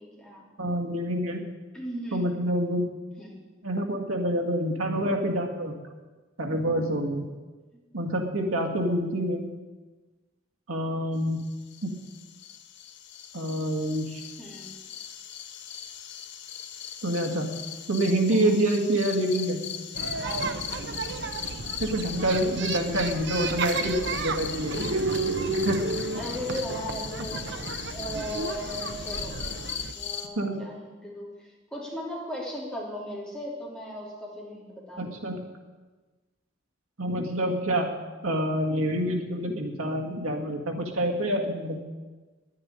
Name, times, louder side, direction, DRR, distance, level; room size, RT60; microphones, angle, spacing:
voice 1, 0.0-0.5 1.7-2.2 3.2-3.4 14.4-14.7 18.3-18.5 20.2-20.5 26.2-27.6 27.9-35.4, equal, 5° left, -5 dB, 3.5 m, -37 dB
voice 2, 0.6-1.4 2.1-2.8 3.6-5.8 6.4-7.3 7.9-9.5 10.7-11.4 11.8-12.0 13.3-14.2 17.0-17.5 17.9-19.6 21.8-25.3 25.6-25.8 30.4-30.7 35.0-35.4 37.0-37.9 38.2-41.8, right 1 dB, 85° right, 1 dB, 2.0 m, -27 dB
sound 1, 11.4-30.3, left 8 dB, 55° left, 1.1 m, -39 dB
sound 2, 19.9-29.9, right 3 dB, 55° right, 0.8 m, -32 dB
10.5 x 9.7 x 9.9 m, 1.3 s
head